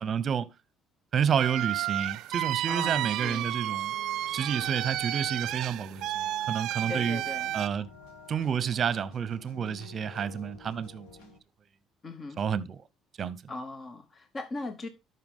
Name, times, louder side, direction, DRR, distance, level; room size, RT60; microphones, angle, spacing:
voice 1, 0.0-0.5 1.1-3.9 4.3-7.2 7.5-7.9 8.3-11.1 12.4-12.8 13.2-13.4, right 7 dB, 40° right, 0.8 m, -30 dB
sound 1, 1.4-7.7, right 14 dB, 70° right, 0.4 m, -32 dB
voice 2, 2.7-3.5 6.9-7.6 12.0-12.4 13.5-14.9, left 2 dB, 30° left, 0.9 m, -39 dB
sound 2, 2.9-11.4, left 4 dB, 90° left, 2.4 m, -51 dB
12.5 x 5.8 x 3.6 m
cardioid pair, 105°, 0 cm